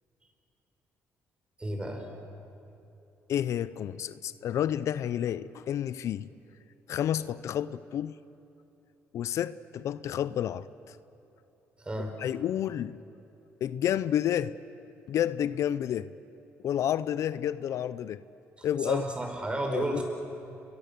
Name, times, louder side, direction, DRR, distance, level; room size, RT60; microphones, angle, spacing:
voice 1, 1.6-2.1 11.8-12.1 18.6-20.0, right 1 dB, 20° right, 3 dB, 5.0 m, -32 dB
voice 2, 3.3-6.3 6.9-8.2 9.1-11.0 12.2-13.0 13.6-14.6 15.1-16.1 16.6-18.2 18.6-19.0 19.7-20.0, left 10 dB, 70° left, 16 dB, 0.6 m, -30 dB
29.5 x 22.0 x 6.8 m, 2.9 s
cardioid pair, 95°, 5 cm